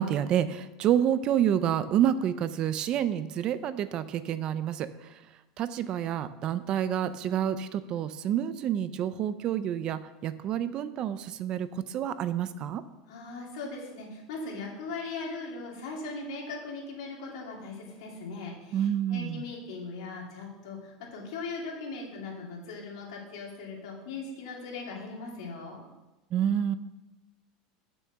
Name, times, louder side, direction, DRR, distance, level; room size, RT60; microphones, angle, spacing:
voice 1, 0.0-4.9 5.6-12.8 18.7-19.4 26.3-26.8, right 10 dB, 30° right, 14 dB, 0.3 m, -28 dB
voice 2, 13.1-25.8, left 3 dB, 80° left, -1 dB, 2.7 m, -39 dB
6.5 x 6.3 x 7.0 m, 1.1 s
supercardioid pair, 180°, 3 cm